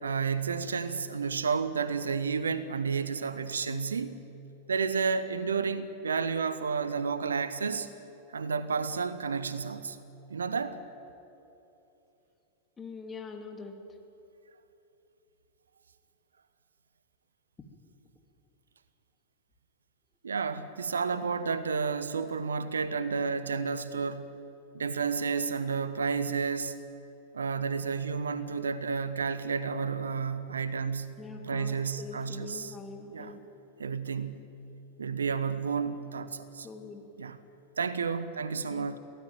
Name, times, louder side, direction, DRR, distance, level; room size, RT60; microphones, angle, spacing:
voice 1, 0.0-4.2 4.7-7.9 8.3-10.0 10.3-10.8 20.2-24.4 24.7-26.7 27.3-31.1 31.4-32.7 33.1-33.3 33.8-34.4 35.0-36.7 37.2-37.4 37.8-39.0, right 5 dB, 70° right, 1.0 m, -31 dB
voice 2, 12.8-13.8 31.2-33.4 36.6-37.1 38.7-38.9, left 4 dB, 20° left, 2.6 m, -43 dB
24.0 x 17.0 x 9.1 m
figure-of-eight pair, 90°, 0 cm